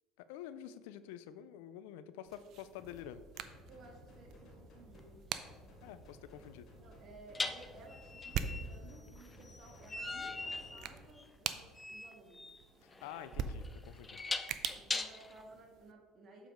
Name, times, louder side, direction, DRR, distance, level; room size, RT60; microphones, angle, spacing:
voice 1, 0.2-3.2 5.8-6.7 12.8-14.2, left 10 dB, 85° left, 13 dB, 0.3 m, -48 dB
sound 1, 2.3-15.9, right 8 dB, 60° right, 0.4 m, -45 dB
sound 2, 2.7-11.0, equal, 55° left, 1.9 m, -57 dB
voice 2, 3.7-5.3 6.8-12.4 14.7-16.5, right 2 dB, 45° right, 0 dB, 1.8 m, -56 dB
sound 3, 5.0-5.1 7.4-15.4, left 3 dB, 20° left, 0.5 m, -41 dB
7.0 x 4.8 x 3.7 m, 1.4 s
supercardioid pair, 90°, 0 cm